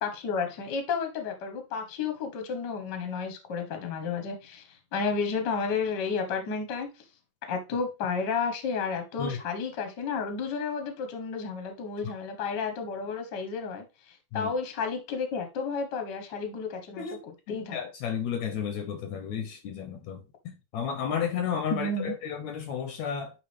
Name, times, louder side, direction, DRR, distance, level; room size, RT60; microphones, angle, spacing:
voice 1, 0.0-6.9 7.5-17.8 21.7-22.1, left 5 dB, 45° left, 1.6 m, -32 dB
voice 2, 17.0-20.2 20.7-23.3, left 7 dB, 70° left, 2.0 m, -32 dB
9.8 x 3.6 x 3.5 m
omnidirectional pair, 3.6 m